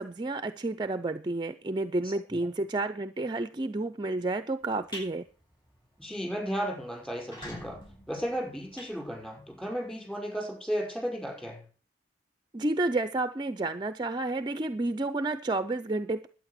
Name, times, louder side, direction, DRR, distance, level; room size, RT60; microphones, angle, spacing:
voice 1, 0.0-5.3 12.5-16.3, right 2 dB, 25° right, 12 dB, 0.5 m, -30 dB
sound 1, 4.6-5.1 5.5-5.8 6.1-6.2 6.5-6.6 7.1-9.6, equal, 25° left, 7.8 m, -44 dB
voice 2, 6.0-7.8 8.1-11.6, equal, 5° left, -1 dB, 5.7 m, -34 dB
11.5 x 9.1 x 6.7 m, 0.41 s
head